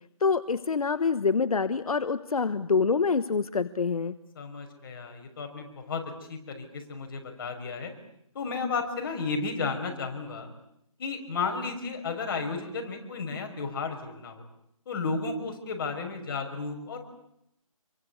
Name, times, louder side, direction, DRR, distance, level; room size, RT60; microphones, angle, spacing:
voice 1, 0.2-4.1, left 5 dB, 80° left, 13 dB, 1.2 m, -26 dB
voice 2, 4.4-6.0 6.3-7.9 8.3-10.5 11.0-14.4 14.9-17.0, left 4 dB, 40° left, 5 dB, 5.8 m, -33 dB
28.0 x 23.5 x 8.4 m, 0.77 s
hypercardioid pair, 165°, 18 cm